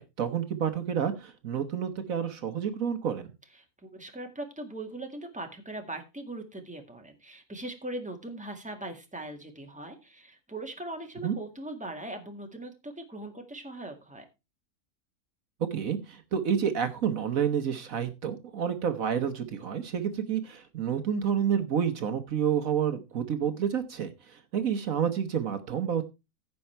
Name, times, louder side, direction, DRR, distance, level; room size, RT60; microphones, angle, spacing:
voice 1, 0.0-3.3 11.2-11.3 15.6-26.0, right 8 dB, 65° right, 9 dB, 1.4 m, -29 dB
voice 2, 3.8-14.2, right 1 dB, 5° right, 3 dB, 1.8 m, -40 dB
15.5 x 5.6 x 4.4 m, 0.27 s
omnidirectional pair, 1.6 m